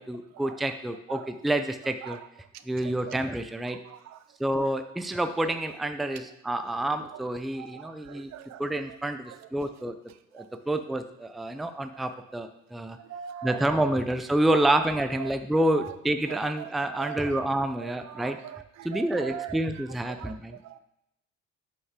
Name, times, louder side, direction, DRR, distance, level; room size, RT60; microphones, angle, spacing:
voice 1, 0.0-2.2 2.6-3.8 4.4-8.3 8.6-10.0 10.3-13.0 13.4-18.4 18.8-20.6, right 1 dB, ahead, 8 dB, 0.4 m, -28 dB
voice 2, 2.8-3.2 3.7-4.2 7.5-8.6 8.9-9.0 9.3-9.4 10.4-10.5 13.0-13.6 14.5-14.6 15.2-15.4 15.8-15.9 16.3-17.4 17.8-20.4 20.6-20.8, right 11 dB, 65° right, 11 dB, 0.6 m, -42 dB
8.1 x 5.3 x 3.7 m, 0.82 s
cardioid pair, 115°, 29 cm